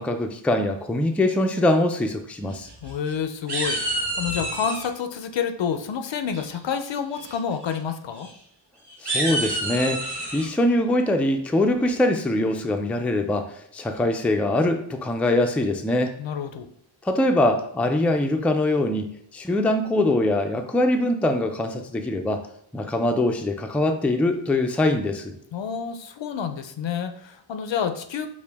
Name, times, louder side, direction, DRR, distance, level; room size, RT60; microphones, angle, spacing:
voice 1, 0.0-2.7 9.0-10.0 10.3-16.1 17.0-22.4 22.7-25.3, left 1 dB, 5° left, 5 dB, 0.3 m, -23 dB
sound 1, 2.5-3.1 3.5-4.9 6.3-6.7 7.1-7.4 7.6-7.8 8.2-8.3 8.9-10.5, right 2 dB, 55° right, 1.0 m, -29 dB
voice 2, 2.8-8.3 16.2-16.7 25.5-28.3, left 7 dB, 70° left, 8 dB, 0.5 m, -29 dB
4.8 x 2.2 x 3.4 m, 0.69 s
wide cardioid pair, 50°, 47 cm